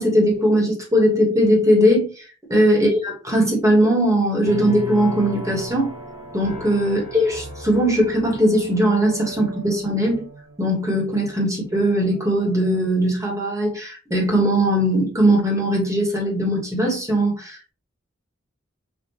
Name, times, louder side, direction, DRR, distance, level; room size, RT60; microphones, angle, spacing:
voice 1, 0.0-2.2 2.5-5.9 6.3-10.2 10.6-17.7, equal, 15° right, -1 dB, 1.3 m, -19 dB
sound 1, 4.4-11.7 12.1-12.8, equal, 85° right, 1.5 m, -36 dB
5.5 x 2.5 x 2.9 m, 0.36 s
head